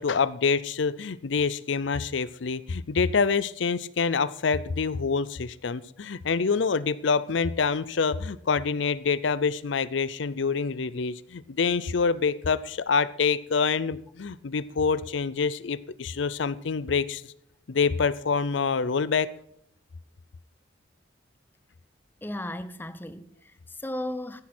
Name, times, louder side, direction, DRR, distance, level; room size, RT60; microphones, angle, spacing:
voice 1, 0.0-17.2 17.7-19.3, left 5 dB, 65° left, 0.5 m, -26 dB
voice 2, 22.2-24.4, left 1 dB, 10° left, 0.7 m, -35 dB
15.5 x 10.5 x 4.4 m
head